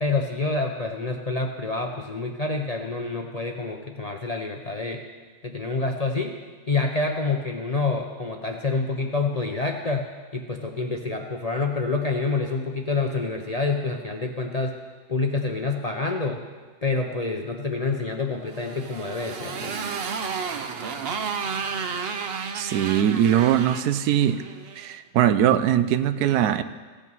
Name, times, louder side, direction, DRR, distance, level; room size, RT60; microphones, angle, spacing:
voice 1, 0.0-5.0 5.4-6.3 6.7-14.7 15.1-16.4 16.8-19.7, left 3 dB, 40° left, 2 dB, 0.5 m, -27 dB
Motorcycle, 18.5-24.9, right 5 dB, 55° right, 0.7 m, -32 dB
voice 2, 22.5-24.4 24.8-26.6, right 10 dB, 90° right, 12 dB, 1.2 m, -21 dB
15.5 x 8.3 x 5.5 m, 1.4 s
omnidirectional pair, 1.6 m